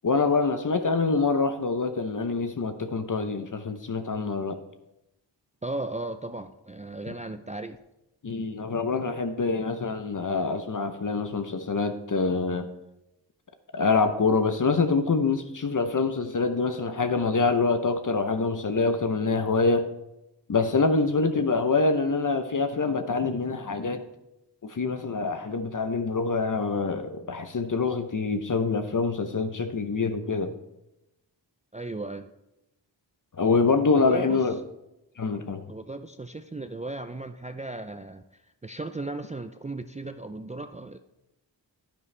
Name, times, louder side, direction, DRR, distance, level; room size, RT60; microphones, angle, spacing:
voice 1, 0.0-4.6 8.2-12.7 13.7-19.9 20.5-24.0 24.6-30.5 33.3-34.6 35.2-35.6, left 4 dB, 45° left, 8 dB, 0.8 m, -25 dB
voice 2, 5.6-7.8 31.7-32.3 34.0-34.4 35.7-41.0, right 2 dB, 15° right, 8 dB, 0.4 m, -36 dB
9.9 x 9.7 x 3.3 m, 0.90 s
cardioid pair, 45°, 45 cm